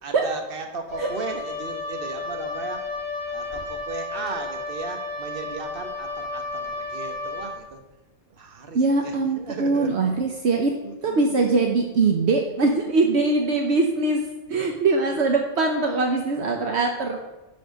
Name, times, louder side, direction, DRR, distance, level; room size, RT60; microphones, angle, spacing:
voice 1, 0.0-2.8 3.3-7.8 8.3-9.9 10.8-11.3, right 4 dB, 50° right, 4 dB, 1.3 m, -36 dB
Wind instrument woodwind instrument, 0.9-7.6, left 3 dB, 50° left, 1.4 m, -32 dB
voice 2, 8.7-10.7 11.0-14.2 14.5-17.3, right 3 dB, 70° right, 2 dB, 1.1 m, -22 dB
10.5 x 4.2 x 6.3 m, 1.0 s
omnidirectional pair, 1.2 m